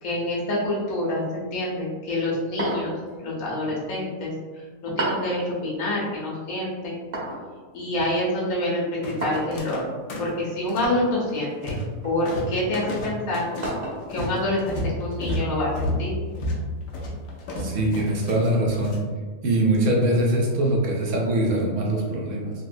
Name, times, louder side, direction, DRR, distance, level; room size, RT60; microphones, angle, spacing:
voice 1, 0.0-2.9 3.2-7.1 7.7-9.8 10.2-11.7 12.0-13.4 14.1-16.1, left 1 dB, 75° left, -5 dB, 1.3 m, -27 dB
sound 1, 2.6-3.1 5.0-5.4 7.1-7.5 9.2-9.6 11.1-11.4 12.0-12.2 13.6-14.1, right 2 dB, 50° right, 0.8 m, -30 dB
sound 2, 9.0-9.8 10.1-11.0 11.3-12.0 12.2-19.0, left 1 dB, 60° left, 0.8 m, -31 dB
voice 2, 17.6-19.0 19.4-22.5, right 1 dB, 80° right, -1 dB, 1.1 m, -22 dB
4.0 x 2.1 x 2.5 m, 1.4 s
omnidirectional pair, 1.5 m